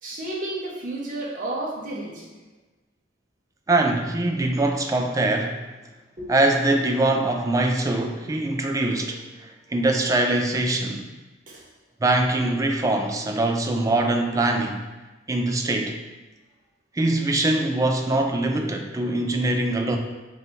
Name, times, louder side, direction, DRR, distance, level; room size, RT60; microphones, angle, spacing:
voice 1, 0.0-2.4 6.2-6.3 11.5-11.6, right 1 dB, 45° right, -3 dB, 0.9 m, -32 dB
voice 2, 3.7-5.6 6.3-11.1 12.0-14.8 15.3-16.0 16.9-20.0, right 2 dB, 20° right, 3 dB, 0.3 m, -23 dB
3.9 x 2.7 x 3.4 m, 1.2 s
head